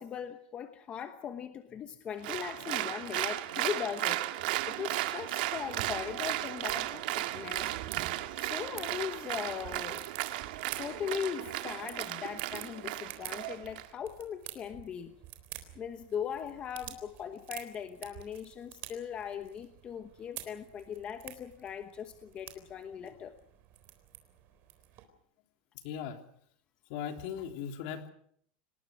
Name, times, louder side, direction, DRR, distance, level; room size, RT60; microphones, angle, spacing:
voice 1, 0.0-7.8 8.4-10.0 10.8-15.1 15.7-23.4, left 8 dB, 20° left, 8 dB, 1.1 m, -39 dB
Applause, 2.2-13.9, right 16 dB, 65° right, 1.8 m, -35 dB
sound 1, 5.6-25.0, right 13 dB, 40° right, 3.8 m, -50 dB
voice 2, 25.8-26.2 26.9-28.1, left 8 dB, 50° left, 5 dB, 3.3 m, -38 dB
29.0 x 19.5 x 6.3 m, 0.66 s
supercardioid pair, 175°, 5 cm